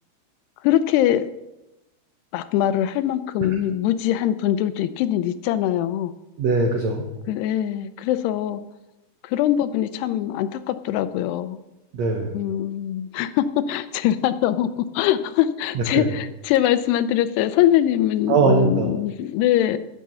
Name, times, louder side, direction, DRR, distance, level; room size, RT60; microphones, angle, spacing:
voice 1, 0.6-1.3 2.3-6.1 7.3-8.6 9.2-11.6 12.3-19.8, left 11 dB, 85° left, 13 dB, 2.7 m, -22 dB
voice 2, 6.4-7.0 11.9-12.3 15.7-16.1 18.3-19.0, right 4 dB, 90° right, 2 dB, 1.5 m, -21 dB
10.0 x 7.6 x 6.8 m, 0.95 s
omnidirectional pair, 4.7 m